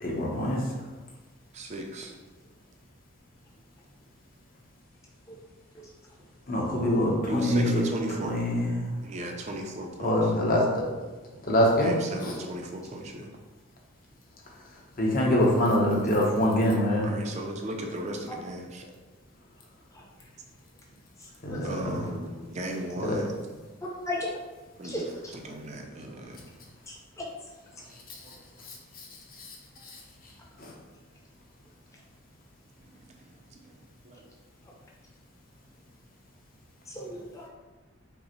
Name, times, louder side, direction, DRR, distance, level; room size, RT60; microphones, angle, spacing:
voice 1, 0.0-0.6 6.5-7.8 8.2-8.8 10.0-10.8 11.5-12.3 15.0-17.1 21.4-22.0 23.0-23.2 30.6-30.7, left 1 dB, 45° left, -2 dB, 0.8 m, -24 dB
voice 2, 1.5-2.1 7.3-8.4 9.0-10.1 11.8-13.3 17.0-18.8 21.6-23.3 24.8-25.0 25.4-26.4 28.2-28.4 34.1-34.2, right 1 dB, 35° right, 2 dB, 0.4 m, -36 dB
voice 3, 24.8-25.3 27.2-27.3 27.8-27.9 34.6-34.7 36.9-37.5, left 1 dB, 15° left, -3 dB, 0.6 m, -35 dB
5.2 x 2.1 x 3.0 m, 1.2 s
head